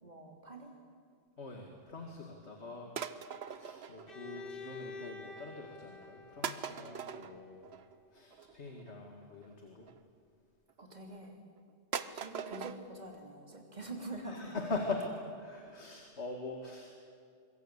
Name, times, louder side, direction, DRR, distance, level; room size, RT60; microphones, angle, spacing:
voice 1, 0.0-0.7 2.6-2.8 10.8-11.4 12.1-14.5, right 2 dB, 40° right, 1 dB, 3.4 m, -45 dB
voice 2, 1.4-2.9 3.6-7.6 8.1-9.9 14.2-15.0 15.4-16.9, left 3 dB, 70° left, 1 dB, 2.4 m, -42 dB
sound 1, 2.9-4.6 4.9-5.4 6.0-6.1 6.4-10.0 10.7-11.3 11.6-11.7 11.9-12.8 13.1-13.2 13.5-13.6 14.0-14.1 14.3-14.4 14.8-14.9 15.1-15.2 15.7-15.8 16.0-16.1, right 7 dB, 65° right, 1.2 m, -42 dB
Bowed string instrument, 4.1-7.9, left 5 dB, 50° left, 2.2 m, -49 dB
24.5 x 22.5 x 8.2 m, 2.3 s
omnidirectional pair, 1.2 m